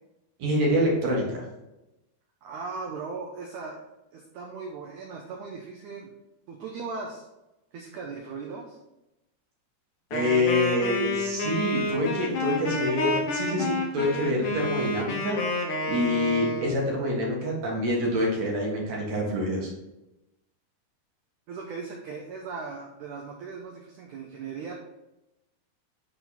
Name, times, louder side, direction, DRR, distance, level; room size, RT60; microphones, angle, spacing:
voice 1, 0.4-1.4 10.1-15.4 15.9-19.7, left 1 dB, 50° right, -2 dB, 2.5 m, -26 dB
voice 2, 2.4-6.1 6.5-7.3 7.7-8.8 21.5-24.7, right 4 dB, 80° right, 0 dB, 1.8 m, -38 dB
Wind instrument woodwind instrument, 10.1-16.8, left 2 dB, 60° left, 2.4 m, -29 dB
10.5 x 4.0 x 4.2 m, 0.94 s
omnidirectional pair, 4.7 m